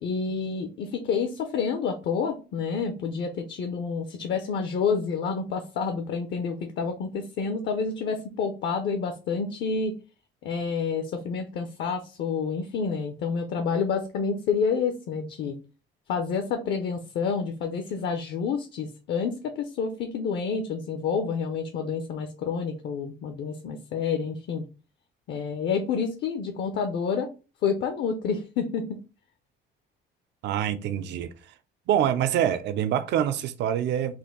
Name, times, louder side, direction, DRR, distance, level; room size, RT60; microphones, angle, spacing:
voice 1, 0.0-9.9 10.4-15.5 16.1-24.6 25.3-27.3 27.6-29.0, left 5 dB, 65° left, 0.7 m, -29 dB
voice 2, 30.4-31.3 31.9-34.2, right 10 dB, 65° right, 0.5 m, -25 dB
4.3 x 2.6 x 3.7 m
cardioid pair, 145°, 20 cm